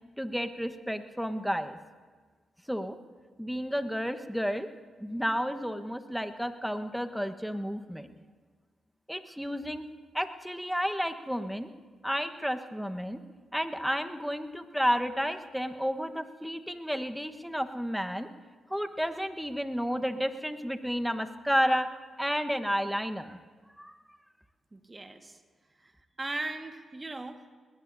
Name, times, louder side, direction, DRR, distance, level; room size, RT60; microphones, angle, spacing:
voice 1, 0.2-1.8 2.7-3.0 3.4-4.7 5.0-8.1 9.1-9.8 10.1-11.7 12.0-13.2 13.5-18.3 18.7-21.9 22.2-23.4 23.8-24.0, equal, ahead, 8 dB, 1.3 m, -31 dB
voice 2, 24.7-25.4 25.8-25.9 26.2-27.6, right 2 dB, 30° right, 6 dB, 1.7 m, -38 dB
21.0 x 20.5 x 2.7 m, 1.5 s
hypercardioid pair, 40°, 0 cm